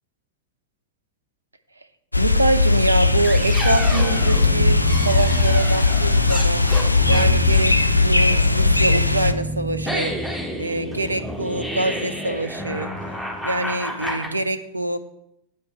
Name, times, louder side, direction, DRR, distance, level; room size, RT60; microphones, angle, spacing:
sound 1, 2.1-9.3, left 3 dB, 85° left, 0.3 m, -18 dB
voice 1, 2.1-12.9 13.4-15.0, right 2 dB, 80° right, 11 dB, 0.5 m, -25 dB
sound 2, 3.0-14.3, equal, 5° left, 1.6 m, -29 dB
8.5 x 4.4 x 6.6 m, 0.78 s
figure-of-eight pair, 90°, 0 cm